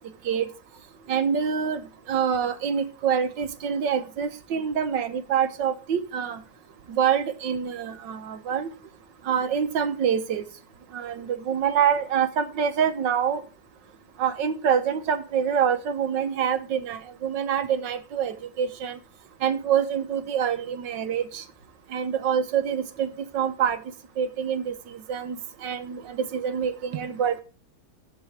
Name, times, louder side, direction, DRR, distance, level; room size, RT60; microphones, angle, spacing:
voice 1, 1.1-1.8 2.1-6.4 6.9-8.7 9.2-10.5 10.9-13.4 14.2-19.0 19.4-21.4 21.9-23.1 23.3-23.8 24.2-25.4 25.6-27.4, right 7 dB, 90° right, 9 dB, 1.7 m, -26 dB
13.5 x 4.7 x 4.8 m, 0.36 s
omnidirectional pair, 1.9 m